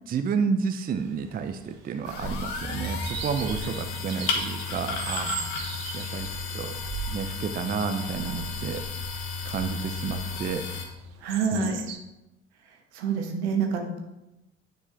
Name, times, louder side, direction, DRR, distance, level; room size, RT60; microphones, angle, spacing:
voice 1, 0.1-5.4 5.9-6.3 6.5-6.7 7.1-8.8 9.5-10.6 11.5-11.7, right 6 dB, 25° right, 8 dB, 0.5 m, -30 dB
sound 1, 1.0-12.0, right 7 dB, 50° right, 1.0 m, -42 dB
sound 2, 2.0-10.9, left 3 dB, 65° left, 1.3 m, -33 dB
voice 2, 11.2-11.8 12.9-14.0, right 6 dB, 70° right, 3 dB, 1.3 m, -27 dB
9.5 x 4.5 x 3.3 m, 0.94 s
figure-of-eight pair, 55°, 34 cm